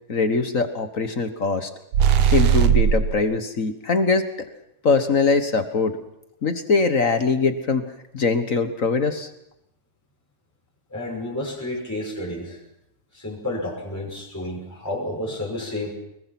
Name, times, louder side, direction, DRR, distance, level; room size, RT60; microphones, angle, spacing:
voice 1, 0.1-1.7 2.3-4.3 4.8-6.0 6.4-7.8 8.1-9.3, left 4 dB, 45° left, 8 dB, 1.0 m, -22 dB
sound 1, 1.9-3.2, right 8 dB, 65° right, 2.0 m, -17 dB
voice 2, 10.9-12.6 13.1-15.9, left 1 dB, 5° left, -3 dB, 6.1 m, -30 dB
25.5 x 22.0 x 6.0 m, 0.83 s
omnidirectional pair, 3.3 m